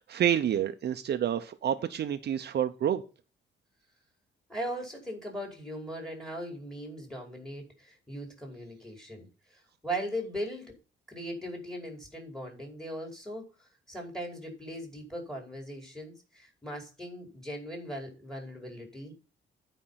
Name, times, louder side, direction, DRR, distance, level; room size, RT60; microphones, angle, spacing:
voice 1, 0.0-3.0, right 10 dB, 55° right, 8 dB, 0.8 m, -28 dB
voice 2, 4.5-10.7 11.1-19.2, equal, 5° left, 2 dB, 5.1 m, -39 dB
11.0 x 5.5 x 5.7 m, 0.34 s
cardioid pair, 90°, 20 cm